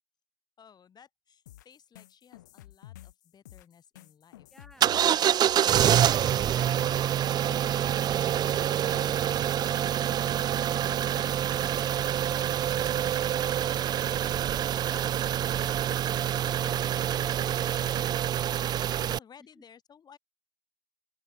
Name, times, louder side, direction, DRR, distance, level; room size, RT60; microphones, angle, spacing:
voice 1, 0.6-4.5 5.1-6.3 8.7-15.6 16.3-20.2, left 7 dB, 45° left, 3.2 m, -57 dB
sound 1, 1.5-9.3, left 15 dB, 90° left, 0.7 m, -50 dB
voice 2, 4.5-5.1 6.4-7.8 19.6-19.7, equal, 5° left, 7.4 m, -57 dB
sound 2, 4.8-19.2, right 10 dB, 45° right, 0.3 m, -26 dB
open air
hypercardioid pair, 55°, 9 cm